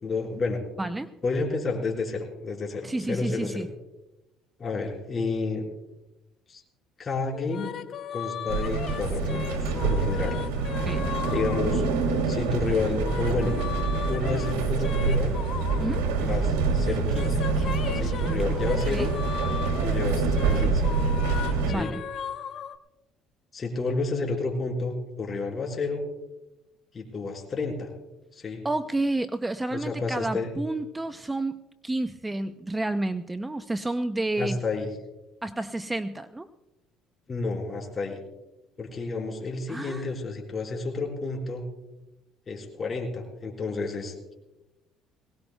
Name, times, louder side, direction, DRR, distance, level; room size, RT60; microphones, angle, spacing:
voice 1, 0.0-0.6 1.2-3.6 4.6-5.7 6.5-6.6 7.0-7.7 8.1-10.4 11.3-11.8 12.2-13.6 14.1-15.3 16.2-17.5 17.9-19.1 19.8-20.9 21.7-21.9 23.5-26.0 26.9-27.9 28.3-28.6 29.7-30.5 34.4-34.9 37.3-38.2 38.8-41.6 42.5-44.3, left 3 dB, 35° left, 1 dB, 4.6 m, -30 dB
voice 2, 0.8-1.1 2.8-3.7 10.8-11.1 15.8-16.1 18.9-19.1 21.6-22.0 28.6-34.6 35.4-36.5 39.7-40.1, right 2 dB, 15° right, 10 dB, 0.5 m, -30 dB
sound 1, 7.3-12.3 12.8-16.5 16.8-22.8, left 8 dB, 50° left, 0.7 m, -37 dB
sound 2, 8.5-21.7, right 4 dB, 85° right, 2.6 m, -26 dB
21.5 x 18.5 x 2.3 m, 0.98 s
supercardioid pair, 90°, 0 cm